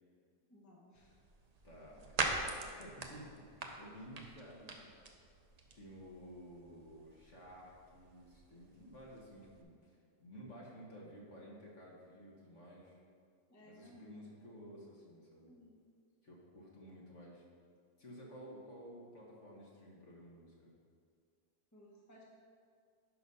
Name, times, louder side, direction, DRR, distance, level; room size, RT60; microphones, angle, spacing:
voice 1, 0.5-1.1 13.5-14.5 15.4-15.8 21.7-22.2, left 1 dB, 10° left, -4 dB, 1.1 m, -60 dB
sound 1, 0.9-9.6, right 3 dB, 85° right, 0.3 m, -44 dB
voice 2, 1.6-5.2 5.7-13.0 13.6-15.6 16.2-17.4 18.0-20.7, equal, 45° left, -4 dB, 1.7 m, -54 dB
11.0 x 4.1 x 5.5 m, 2.2 s
omnidirectional pair, 1.7 m